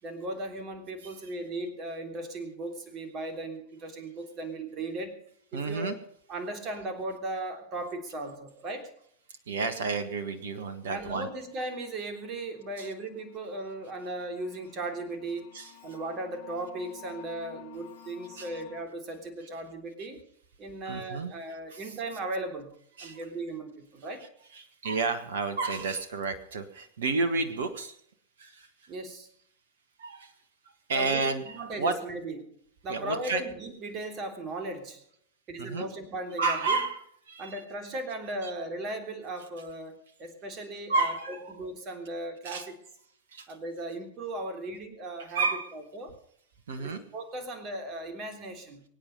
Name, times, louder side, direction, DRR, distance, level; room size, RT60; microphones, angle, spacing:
voice 1, 0.0-5.2 5.5-5.9 6.3-8.9 10.9-15.5 15.8-20.2 20.6-22.7 23.0-24.2 27.6-27.7 28.9-29.3 30.9-31.3 31.5-32.5 32.8-35.0 35.5-36.8 37.4-42.7 43.5-46.1 46.8-48.8, right 2 dB, 30° right, 6 dB, 3.5 m, -37 dB
voice 2, 5.5-5.9 9.5-11.3 12.8-12.9 15.5-15.7 18.4-18.6 20.8-21.3 21.7-21.9 23.0-23.2 24.5-28.0 28.4-28.7 30.0-30.3 30.9-31.9 32.9-33.4 35.6-35.9 36.4-37.5 38.4-38.5 40.9-41.5 42.4-42.7 43.3-43.5 45.3-45.7 46.7-47.0, right 3 dB, 60° right, 11 dB, 1.5 m, -31 dB
sound 1, 10.8-10.9 11.2-18.9, left 17 dB, 50° left, 2.3 m, -53 dB
23.5 x 9.3 x 5.3 m, 0.66 s
figure-of-eight pair, 90°, 0 cm